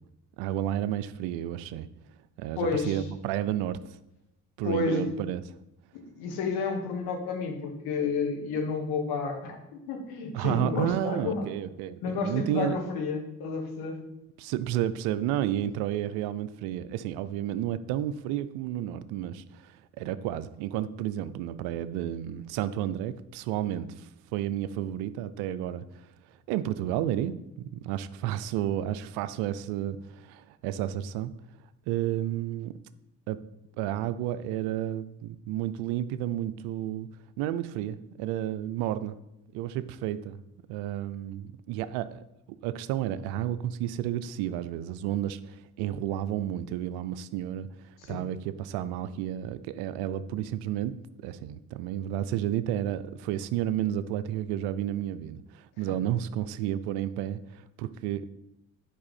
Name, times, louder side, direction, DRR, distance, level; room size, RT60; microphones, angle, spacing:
voice 1, 0.4-1.9 2.4-3.8 4.6-5.4 10.3-12.8 14.4-26.1 26.5-31.3 31.9-32.7 33.3-33.4 33.8-37.1 37.4-39.2 39.5-40.4 40.7-42.2 42.6-58.3, right 12 dB, 90° right, 0.5 m, -31 dB
voice 2, 2.6-3.0 4.6-5.1 5.9-11.4 12.0-14.0 48.0-48.2 55.9-56.0, left 4 dB, 80° left, 1.6 m, -31 dB
8.6 x 5.5 x 4.2 m
supercardioid pair, 50°, 37 cm